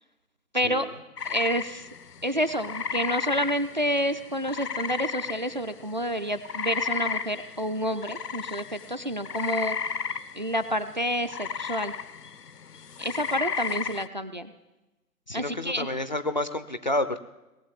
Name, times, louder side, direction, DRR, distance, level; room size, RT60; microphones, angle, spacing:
voice 1, 0.5-0.9 1.2-1.9 2.2-9.8 10.4-11.9 13.0-14.5 15.3-15.9, equal, 30° right, 12 dB, 0.4 m, -29 dB
sound 1, 1.2-5.9 6.1-14.1, left 6 dB, 80° left, 0.8 m, -33 dB
voice 2, 15.3-17.2, left 1 dB, 30° left, 12 dB, 0.4 m, -29 dB
19.0 x 7.5 x 9.8 m, 1.0 s
figure-of-eight pair, 135°, 47 cm